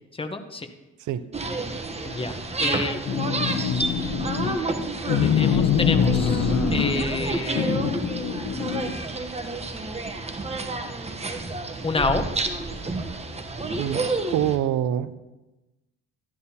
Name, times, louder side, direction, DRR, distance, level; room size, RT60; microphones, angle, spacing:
voice 1, 0.1-0.7 2.0-3.1 5.2-7.9 11.8-12.2, left 3 dB, 20° left, 7 dB, 0.9 m, -29 dB
voice 2, 1.0-1.3 13.8-15.2, right 11 dB, 75° right, 14 dB, 0.6 m, -26 dB
sound 1, 1.3-14.6, right 3 dB, 20° right, 0.9 m, -30 dB
sound 2, 3.1-4.6 5.1-7.2 7.6-8.9, left 7 dB, 65° left, 0.9 m, -24 dB
13.5 x 11.0 x 2.8 m, 1.1 s
cardioid pair, 90°, 30 cm